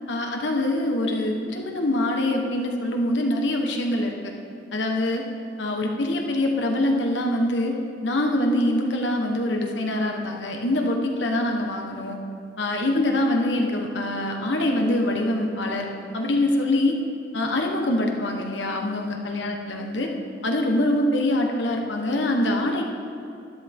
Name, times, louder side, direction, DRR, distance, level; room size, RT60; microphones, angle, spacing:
voice 1, 0.1-4.3 4.7-5.2 5.6-7.7 8.0-12.2 12.6-15.9 16.1-17.0 17.3-20.1 20.4-22.8, left 1 dB, 70° left, 2 dB, 1.3 m, -24 dB
12.5 x 11.5 x 3.7 m, 2.6 s
head